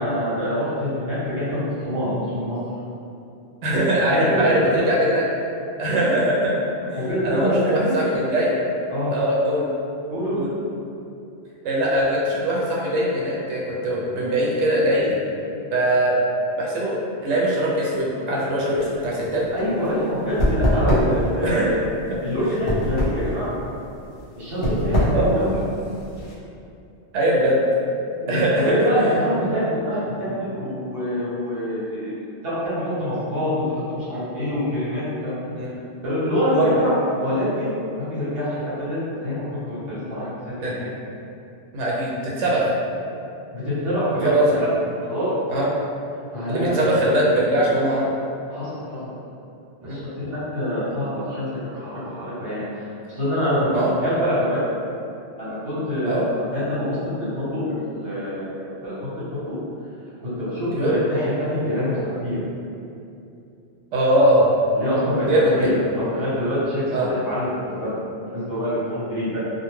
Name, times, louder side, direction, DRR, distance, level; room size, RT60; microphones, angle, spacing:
voice 1, 0.0-2.6 4.1-4.8 6.9-7.9 8.9-9.1 10.1-10.4 19.5-21.8 22.2-23.6 24.3-25.6 28.2-32.1 32.4-35.4 36.0-37.7 38.0-40.3 40.6-40.9 43.5-44.7 45.1-45.3 46.3-46.8 48.5-49.0 49.8-54.6 55.4-59.6 60.2-62.4 64.7-69.4, equal, 60° right, -10 dB, 1.1 m, -25 dB
voice 2, 3.6-5.2 5.8-6.6 6.9-7.0 7.2-8.6 9.1-9.7 10.4-10.5 11.6-15.2 15.7-16.2 16.6-17.0 17.2-19.4 21.4-21.8 22.1-22.2 25.1-25.2 27.1-27.6 28.3-29.1 29.5-29.6 30.2-30.3 35.6-35.8 36.5-36.8 40.6-40.7 41.7-42.7 44.2-44.6 45.5-45.7 46.5-48.1 49.8-50.0 53.7-53.9 56.0-56.2 60.7-60.9 63.9-64.5 65.2-65.7 66.9-67.1, right 1 dB, 80° right, -5 dB, 0.9 m, -21 dB
sound 1, 18.8-26.3, equal, 60° left, 0.8 m, -24 dB
2.3 x 2.2 x 3.0 m, 2.6 s
omnidirectional pair, 1.2 m